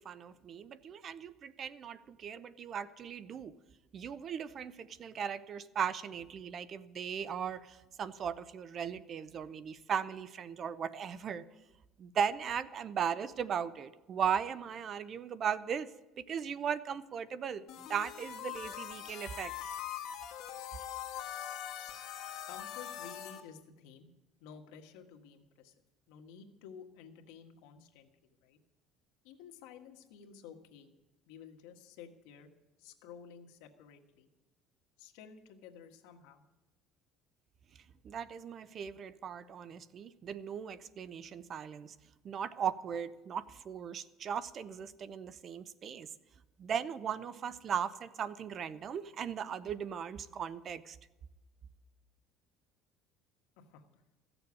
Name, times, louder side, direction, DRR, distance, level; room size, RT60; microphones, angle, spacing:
voice 1, 0.0-3.5 3.9-11.4 12.0-15.9 16.2-19.5 38.0-41.9 42.2-46.1 46.6-51.0, right 7 dB, 40° right, 16 dB, 0.6 m, -37 dB
sound 1, 17.7-23.4, left 10 dB, 55° left, 1.8 m, -42 dB
voice 2, 22.4-24.1 24.4-25.7 26.1-28.6 29.2-30.9 31.3-32.5 32.8-34.3 35.0-36.4 53.6-54.0, left 7 dB, 90° left, 3 dB, 1.5 m, -53 dB
15.0 x 7.0 x 9.6 m, 1.0 s
cardioid pair, 140°, 0 cm